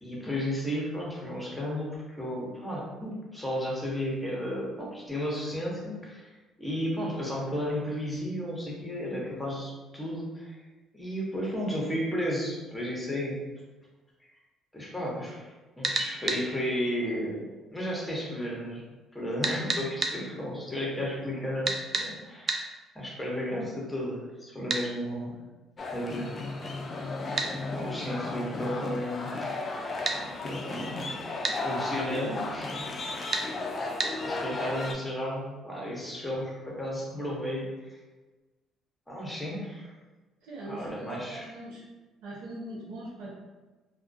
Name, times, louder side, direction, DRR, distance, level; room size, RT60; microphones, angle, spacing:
voice 1, 0.0-6.2 6.6-10.6 10.9-13.4 14.7-15.4 15.8-17.4 17.7-18.8 19.1-22.6 22.9-25.4 25.9-26.3 27.7-29.3 30.1-31.3 31.6-33.3 34.2-37.6 39.1-39.9 40.7-41.5, equal, 5° left, -4 dB, 0.9 m, -33 dB
sound 1, 15.8-16.4 19.4-20.2 21.7-22.1 22.5-22.6 24.7-24.9 27.4-27.5 30.1-30.2 31.4-31.6 33.3-33.5 34.0-34.1, right 3 dB, 40° right, 0.3 m, -28 dB
sound 2, 25.8-34.9, left 2 dB, 40° left, 0.3 m, -34 dB
voice 2, 40.4-41.8 42.2-43.3, right 1 dB, 85° right, -6 dB, 0.6 m, -41 dB
2.2 x 2.2 x 2.6 m, 1.2 s
supercardioid pair, 75°, 0 cm